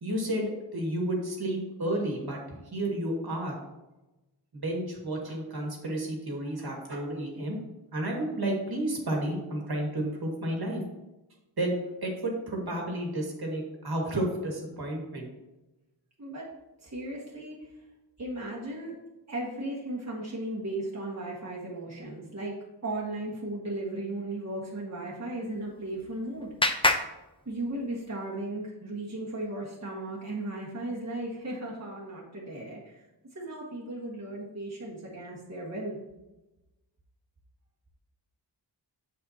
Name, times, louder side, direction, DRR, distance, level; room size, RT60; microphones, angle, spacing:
voice 1, 0.0-3.6 4.5-7.6 7.9-10.8 11.6-15.3, right 1 dB, 55° right, -1 dB, 1.9 m, -31 dB
voice 2, 16.8-17.7 18.2-18.9 19.3-22.5 22.8-26.5 27.4-33.0 33.3-36.0, right 1 dB, 35° right, -4 dB, 1.6 m, -36 dB
Clapping, 25.5-28.1, left 2 dB, 10° left, 0.6 m, -30 dB
7.4 x 7.3 x 2.8 m, 1.0 s
wide cardioid pair, 70°, 44 cm